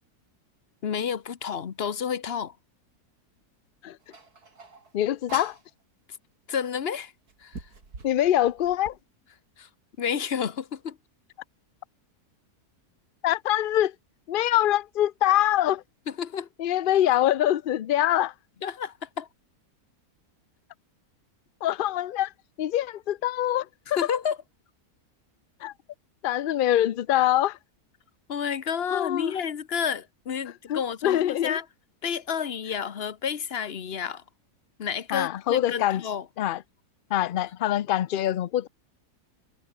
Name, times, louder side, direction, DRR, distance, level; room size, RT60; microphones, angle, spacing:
voice 1, 0.8-2.5 6.5-7.1 7.4-7.6 9.6-9.7 10.0-11.0 16.2-16.5 18.6-19.3 23.9-24.4 28.3-31.6 32.0-34.2 34.8-36.3, left 7 dB, 45° left, 1.1 m, -30 dB
sound 1, 4.1-5.7 6.6-6.7 7.3-9.0, right 3 dB, 80° right, 4.0 m, -43 dB
voice 2, 4.9-5.6 8.0-9.0 13.2-13.9 14.3-15.8 16.6-18.3 21.6-22.3 22.6-23.7 24.0-24.1 25.6-25.7 26.2-27.6 28.9-29.3 30.7-31.6 35.1-36.0 36.4-36.6 37.1-38.7, left 12 dB, 85° left, 0.4 m, -24 dB
omnidirectional pair, 1.6 m